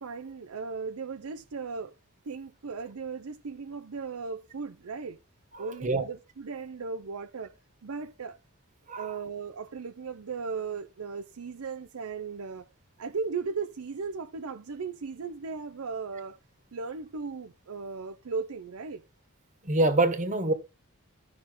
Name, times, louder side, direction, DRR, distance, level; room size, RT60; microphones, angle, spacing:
voice 1, 0.0-1.9 2.2-5.2 5.6-7.5 7.8-8.4 9.0-12.7 13.0-16.4 16.7-19.0, right 5 dB, 70° right, 0.6 m, -37 dB
voice 2, 5.5-6.1 8.9-9.1 19.6-20.5, right 2 dB, 35° right, 1.5 m, -26 dB
13.0 x 5.9 x 3.8 m
head